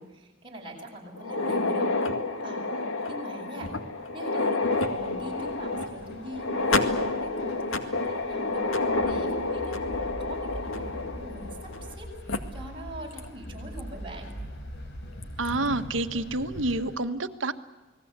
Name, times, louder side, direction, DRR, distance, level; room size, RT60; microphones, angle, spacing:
voice 1, 0.0-1.9 2.4-2.6 3.1-3.7 4.1-4.7 4.9-8.7 9.1-14.3, right 1 dB, 25° right, -1 dB, 7.7 m, -42 dB
sound 1, 1.2-11.9 12.3-12.4 13.2-13.3 13.8-13.9 15.2-15.5, left 3 dB, 80° left, 2.1 m, -29 dB
sound 2, 4.7-17.0, equal, 65° left, 4.2 m, -47 dB
sound 3, 8.9-16.5, equal, 10° left, 7.7 m, -42 dB
voice 2, 15.4-17.5, right 2 dB, 70° right, 8 dB, 1.6 m, -28 dB
29.5 x 20.5 x 8.3 m, 1.2 s
head